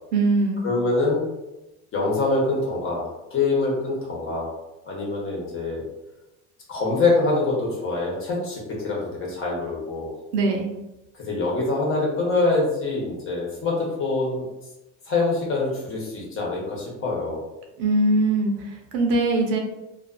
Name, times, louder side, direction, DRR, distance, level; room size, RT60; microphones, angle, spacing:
voice 1, 0.1-0.6 10.3-10.7 17.8-19.6, right 2 dB, 90° right, 1 dB, 0.7 m, -21 dB
voice 2, 0.6-1.2 1.9-4.5 4.8-5.8 6.7-10.1 11.3-14.4 15.1-17.4, left 3 dB, 35° left, -3 dB, 0.9 m, -24 dB
2.4 x 2.4 x 2.4 m, 1.0 s
supercardioid pair, 120°, 35 cm